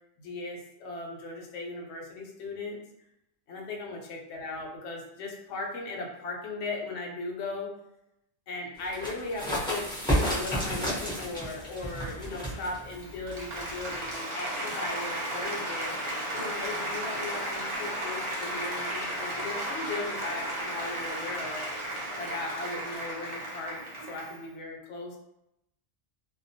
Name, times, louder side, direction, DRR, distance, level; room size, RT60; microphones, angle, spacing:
voice 1, 0.2-2.8 3.5-7.7 8.5-15.9 16.3-21.7 22.2-25.2, left 3 dB, 65° left, 0 dB, 0.8 m, -37 dB
sound 1, 8.8-14.2, equal, 5° left, 0.6 m, -32 dB
Applause, 12.9-24.4, right 1 dB, 40° right, 0.4 m, -34 dB
2.3 x 2.2 x 2.6 m, 0.83 s
omnidirectional pair, 1.3 m